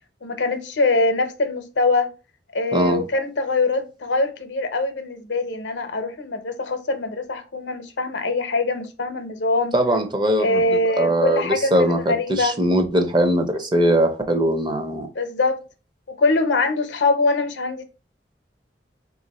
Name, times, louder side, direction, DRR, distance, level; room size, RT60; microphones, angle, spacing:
voice 1, 0.2-2.1 2.5-9.7 10.4-12.5 15.1-15.6 16.2-17.8, left 3 dB, 85° left, 0.6 m, -23 dB
voice 2, 2.7-3.0 9.7-15.1, right 1 dB, 25° right, 0.6 m, -21 dB
3.5 x 2.5 x 4.1 m
head